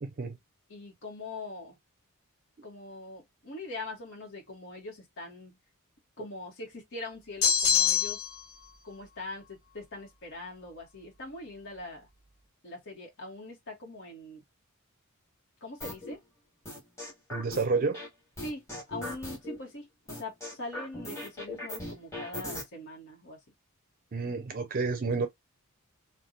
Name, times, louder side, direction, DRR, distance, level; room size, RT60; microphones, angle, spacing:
voice 1, 0.0-0.4 17.3-18.0 24.1-25.3, right 4 dB, 40° right, 0.5 m, -30 dB
voice 2, 0.7-1.8 2.6-5.6 6.2-8.3 8.8-12.1 12.6-14.4 15.6-16.2 18.4-23.4, left 2 dB, 60° left, 1.3 m, -42 dB
sound 1, 7.4-8.4, left 7 dB, 80° left, 1.1 m, -24 dB
sound 2, 15.8-16.1 16.7-18.1 18.4-19.6 20.1-22.6, left 1 dB, 15° left, 1.6 m, -39 dB
3.4 x 2.3 x 2.7 m
head